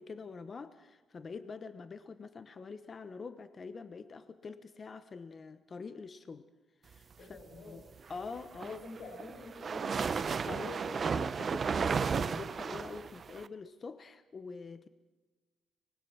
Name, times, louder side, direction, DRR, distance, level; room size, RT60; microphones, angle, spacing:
voice 1, 0.0-6.5 6.8-7.8 8.1-8.8 10.4-14.9, left 4 dB, 45° left, 12 dB, 1.0 m, -45 dB
voice 2, 7.2-7.8 8.6-10.2 10.5-10.9, left 2 dB, 70° left, -4 dB, 5.8 m, -47 dB
sound 1, 8.4-13.5, right 5 dB, 50° right, 0.7 m, -33 dB
25.0 x 19.5 x 6.2 m, 1.2 s
cardioid pair, 80°, 0 cm